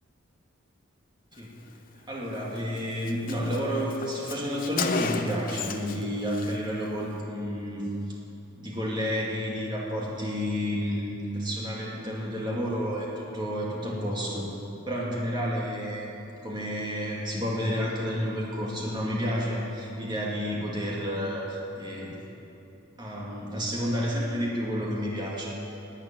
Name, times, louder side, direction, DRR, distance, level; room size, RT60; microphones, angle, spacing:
voice 1, 2.1-7.9 8.6-14.5 14.8-22.1 23.0-25.8, equal, 20° right, -4 dB, 2.2 m, -30 dB
Car, 2.4-2.5 2.8-2.9 3.1-6.0 6.3-6.6, left 5 dB, 40° left, 0.7 m, -33 dB
11.5 x 8.6 x 9.5 m, 3.0 s
head